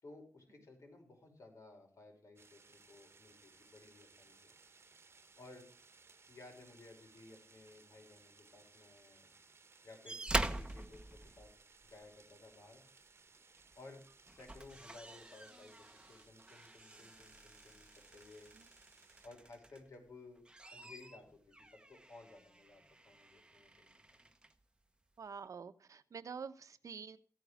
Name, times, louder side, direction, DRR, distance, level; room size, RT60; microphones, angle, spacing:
voice 1, 0.0-4.5 5.4-5.7 6.3-9.3 9.8-11.5 11.8-12.8 13.7-18.5 19.2-20.4 20.7-24.2, left 2 dB, 70° left, 3 dB, 5.8 m, -57 dB
sound 1, 2.4-19.3, right 4 dB, 50° right, 1.2 m, -64 dB
sound 2, 10.0-12.1 13.6-13.8 14.2-20.0 20.4-24.6 25.4-25.5, right 2 dB, 15° right, 1.0 m, -44 dB
voice 2, 25.2-27.2, right 6 dB, 75° right, 11 dB, 1.0 m, -47 dB
15.5 x 9.4 x 5.1 m, 0.42 s
wide cardioid pair, 115°, 6 cm